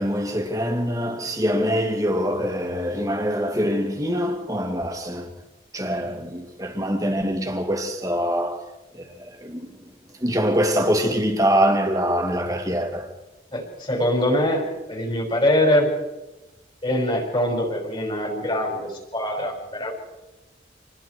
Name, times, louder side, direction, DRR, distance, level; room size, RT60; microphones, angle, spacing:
voice 1, 0.0-5.3 5.7-8.6 8.9-9.7 10.2-13.1, equal, 20° right, 2.6 m, -24 dB
voice 2, 13.5-14.6 14.9-15.9 16.8-19.9, left 1 dB, 25° left, 5.6 m, -23 dB
28.0 x 21.0 x 4.7 m
head